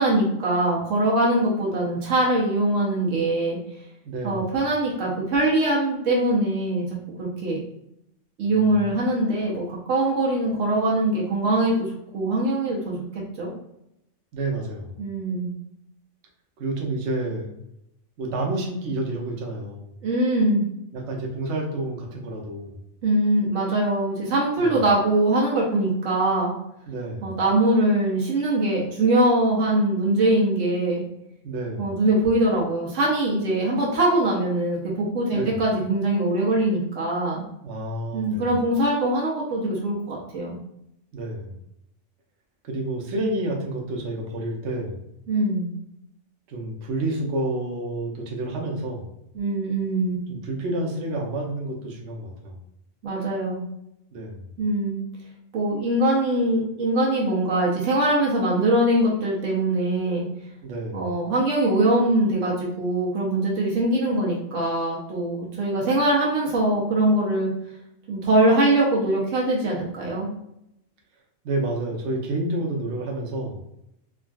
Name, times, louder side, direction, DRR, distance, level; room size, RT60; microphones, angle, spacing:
voice 1, 0.0-3.6 4.2-6.8 7.2-7.6 8.4-11.9 12.1-13.5 15.0-15.5 20.0-20.6 23.0-26.5 27.2-31.0 31.8-37.4 38.1-40.6 45.3-45.7 49.3-50.2 53.0-53.6 54.6-55.1 55.5-60.3 60.9-67.5 68.1-70.3, right 1 dB, 85° right, -4 dB, 1.2 m, -22 dB
voice 2, 4.0-4.5 8.5-8.9 14.3-15.0 16.6-17.5 18.2-19.9 20.9-22.8 24.6-24.8 26.9-27.4 31.4-32.0 35.3-35.6 37.6-38.6 41.1-41.6 42.6-45.0 46.5-49.1 50.3-52.6 54.1-54.5 60.6-61.2 71.4-73.6, right 2 dB, 70° right, 0 dB, 1.0 m, -29 dB
3.5 x 2.4 x 2.3 m, 0.80 s
omnidirectional pair, 1.3 m